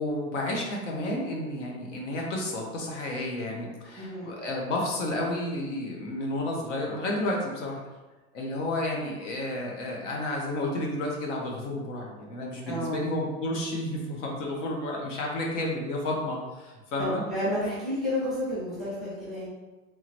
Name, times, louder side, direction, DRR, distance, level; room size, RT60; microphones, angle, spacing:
voice 1, 0.0-7.8 8.3-17.2, left 1 dB, 55° left, -1 dB, 0.9 m, -31 dB
voice 2, 4.0-4.3 12.6-13.1 17.0-19.5, left 1 dB, ahead, -10 dB, 0.9 m, -31 dB
3.7 x 3.0 x 2.9 m, 1.2 s
supercardioid pair, 170°, 43 cm